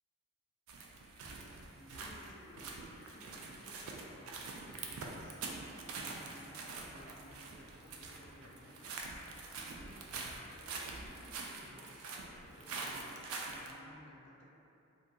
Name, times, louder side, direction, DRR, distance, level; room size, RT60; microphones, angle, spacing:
sound 1, 0.7-13.7, right 3 dB, 75° right, 0.3 m, -45 dB
voice 1, 1.7-5.4 6.1-8.9 9.5-13.1 13.6-14.5, left 1 dB, 55° left, -3 dB, 0.4 m, -58 dB
2.7 x 2.3 x 2.6 m, 2.9 s
head